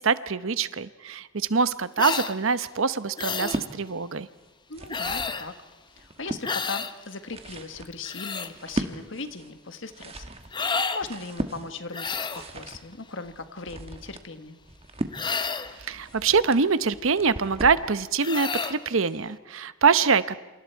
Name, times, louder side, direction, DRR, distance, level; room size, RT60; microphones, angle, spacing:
voice 1, 0.0-4.3 15.8-20.4, right 5 dB, 75° right, 14 dB, 0.9 m, -24 dB
sound 1, 2.0-2.3 3.2-3.6 4.9-5.5 6.4-6.9 7.8-8.5 10.5-11.0 11.9-12.5 15.1-15.8 18.2-18.8, left 5 dB, 20° left, 0.8 m, -30 dB
sound 2, 3.3-3.7 4.5-5.4 5.8-6.5 7.1-17.9, right 1 dB, 30° right, 1.3 m, -37 dB
voice 2, 4.7-5.6 6.0-10.2 10.9-14.6, left 3 dB, 65° left, 9 dB, 1.5 m, -38 dB
28.5 x 27.5 x 4.6 m, 1.2 s
head